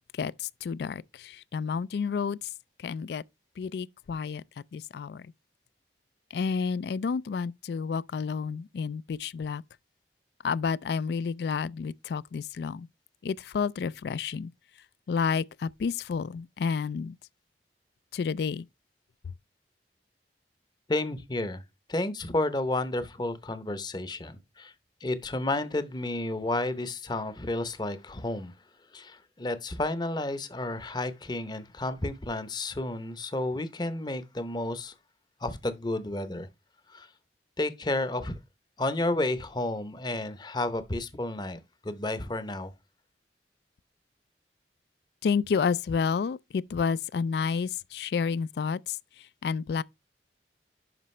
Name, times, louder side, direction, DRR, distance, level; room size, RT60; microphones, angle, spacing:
voice 1, 0.1-2.5 2.8-3.2 3.6-4.4 4.7-5.3 6.3-9.6 10.4-12.9 13.2-14.5 15.1-17.2 18.1-18.7 45.2-49.8, left 5 dB, 65° left, 0.3 m, -30 dB
voice 2, 20.9-21.6 21.9-24.7 25.0-28.5 28.9-34.9 35.4-36.5 36.9-37.1 37.6-38.4 38.8-42.7, left 2 dB, 25° left, 0.7 m, -31 dB
11.0 x 5.0 x 3.2 m
head